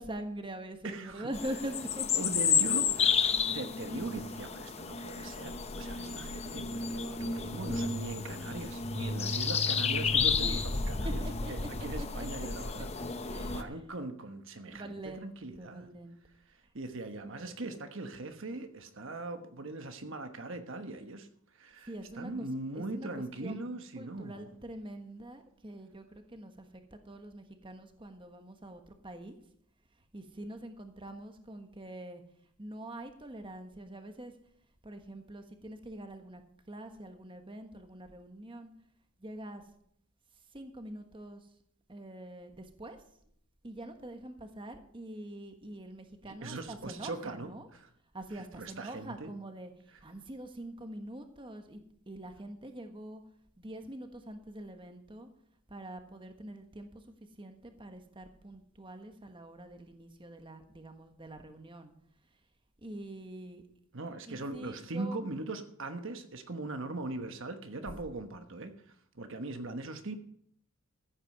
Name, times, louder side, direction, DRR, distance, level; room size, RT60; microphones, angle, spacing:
voice 1, 0.0-2.2 5.9-6.6 10.4-10.7 11.0-11.5 11.8-12.5 13.2-13.9 14.7-16.2 21.9-22.5 22.7-23.6 23.9-29.4 30.1-32.2 32.6-34.3 34.8-36.4 36.7-38.7 39.2-39.7 40.5-41.5 41.9-43.0 43.6-47.7 48.1-51.8 52.1-53.2 53.6-55.3 55.7-61.9 62.8-63.6 64.3-65.2 68.1-68.2, right 1 dB, 25° right, 6 dB, 1.3 m, -44 dB
voice 2, 0.8-1.3 2.1-12.9 13.4-15.9 16.7-24.5 46.2-47.9 48.3-49.3 63.9-70.1, right 2 dB, 60° right, 7 dB, 1.2 m, -40 dB
sound 1, 1.3-13.6, left 5 dB, 30° left, 0.8 m, -31 dB
14.5 x 8.8 x 5.4 m, 0.67 s
head